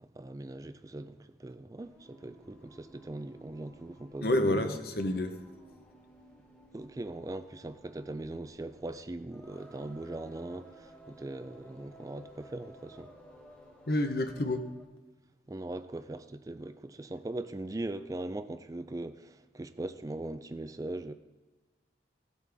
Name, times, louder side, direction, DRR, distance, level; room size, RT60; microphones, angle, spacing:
voice 1, 0.0-4.8 6.7-13.1 15.5-21.1, right 2 dB, 20° right, 0.3 m, -40 dB
Singing, 1.8-15.0, right 1 dB, 5° left, 1.0 m, -56 dB
voice 2, 4.2-5.4 13.9-14.6, left 1 dB, 60° left, 0.9 m, -28 dB
16.5 x 8.4 x 3.5 m
head